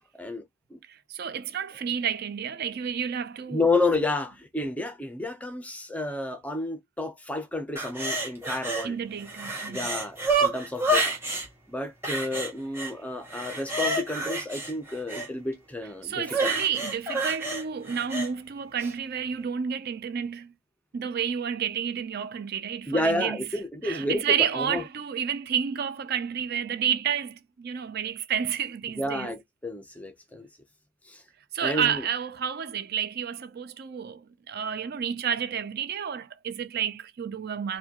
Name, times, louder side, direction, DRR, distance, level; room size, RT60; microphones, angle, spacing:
voice 1, 0.9-3.6 8.8-9.8 16.0-20.5 20.9-23.4 23.8-29.3 31.5-37.8, right 8 dB, 45° right, 0.3 m, -30 dB
voice 2, 3.5-9.0 9.7-11.1 11.7-16.6 22.9-24.2 24.5-24.8 29.0-30.5 31.0-31.2 31.6-32.0, left 2 dB, 5° left, 0.5 m, -30 dB
sound 1, 7.8-8.9 9.2-11.5 12.0-12.9 13.3-15.3 16.3-18.3 18.8-18.9, right 2 dB, 10° right, 1.3 m, -29 dB
4.8 x 2.2 x 2.8 m
head